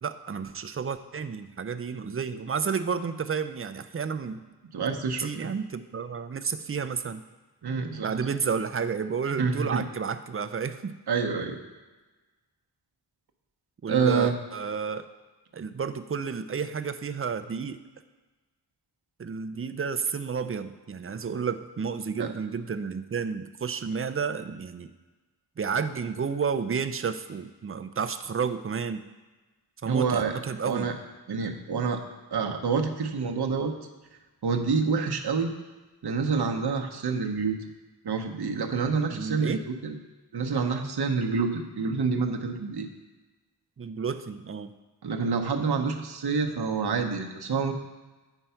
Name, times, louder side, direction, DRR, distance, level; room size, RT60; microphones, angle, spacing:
voice 1, 0.0-4.4 5.2-7.2 8.0-10.9 13.8-15.0 15.5-17.8 19.2-24.9 25.6-29.0 29.8-30.9 39.1-39.6 43.8-44.7, right 6 dB, 35° right, 11 dB, 0.4 m, -31 dB
voice 2, 4.7-5.5 7.6-8.1 9.4-9.8 11.1-11.6 13.9-14.4 22.2-22.3 29.8-30.4 30.6-30.9 31.3-32.0 32.3-33.7 34.4-35.5 36.0-37.7 38.0-40.0 40.3-42.9 45.0-47.7, right 5 dB, 65° right, 3 dB, 0.9 m, -27 dB
9.0 x 4.5 x 5.6 m, 1.2 s
wide cardioid pair, 90°, 42 cm